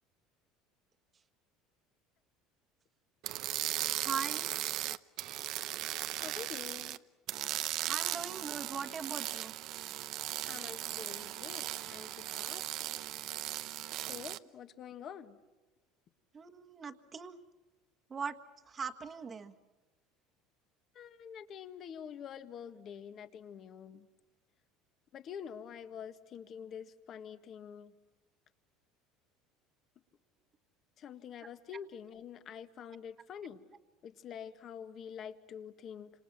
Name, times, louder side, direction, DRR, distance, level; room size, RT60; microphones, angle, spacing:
sound 1, 3.2-7.0 7.3-14.4, right 15 dB, 55° right, 0.8 m, -37 dB
voice 1, 4.0-4.4 7.9-9.5 16.3-17.4 18.1-18.3 18.7-19.5, right 5 dB, 25° right, 8 dB, 1.5 m, -40 dB
voice 2, 6.2-7.0 10.4-13.0 14.0-15.4 20.9-24.1 25.1-27.9 31.0-33.6 34.0-36.1, left 8 dB, 40° left, 10 dB, 1.7 m, -47 dB
29.0 x 27.0 x 6.0 m, 1.2 s
cardioid pair, 140°, 0 cm